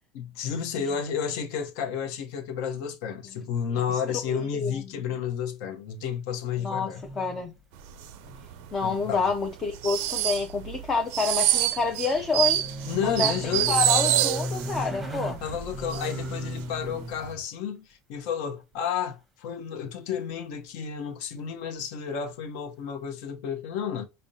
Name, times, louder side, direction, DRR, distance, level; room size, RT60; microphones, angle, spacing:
voice 1, 0.1-7.0 8.8-9.3 12.9-13.8 15.4-24.1, left 7 dB, 60° left, 0.7 m, -31 dB
voice 2, 3.9-5.0 6.6-7.5 8.7-12.6 13.0-15.4, left 4 dB, 20° left, 0.5 m, -28 dB
sound 1, 6.7-7.6 7.9-8.7 9.0-9.1 11.6-17.4 20.3-20.4, equal, 5° right, 0.9 m, -36 dB
sound 2, 8.0-8.3 8.5-8.7 9.1-14.8 15.2-15.3 15.6-16.2 16.5-16.8 17.2-17.3, right 13 dB, 70° right, 0.4 m, -26 dB
5.1 x 2.1 x 2.6 m
supercardioid pair, 155°, 0 cm